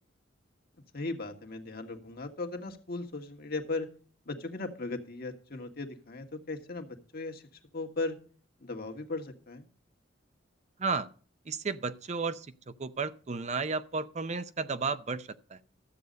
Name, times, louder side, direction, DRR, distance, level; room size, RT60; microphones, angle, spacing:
voice 1, 0.9-3.9 4.2-6.9 7.1-7.4 7.7-8.1 8.6-9.7, left 3 dB, 55° left, 1.7 m, -37 dB
voice 2, 11.5-12.5 12.8-15.6, right 4 dB, 40° right, 0.6 m, -33 dB
13.0 x 8.0 x 5.2 m
head